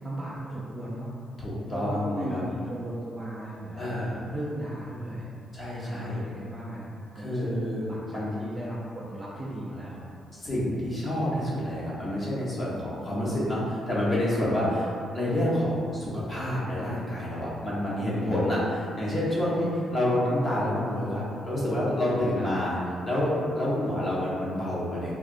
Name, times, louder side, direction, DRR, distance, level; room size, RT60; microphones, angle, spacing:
voice 1, 0.0-1.1 1.7-5.3 5.8-6.9 7.2-7.5 7.8-10.0 14.7-14.9 22.4-22.5, right 1 dB, 20° right, -6 dB, 0.3 m, -36 dB
voice 2, 1.4-2.4 3.7-4.2 5.5-6.2 7.2-7.8 8.1-8.3 10.3-14.8 15.1-22.8 23.0-25.1, left 1 dB, 25° left, -7 dB, 0.6 m, -28 dB
3.4 x 2.2 x 2.5 m, 2.4 s
cardioid pair, 165°, 0 cm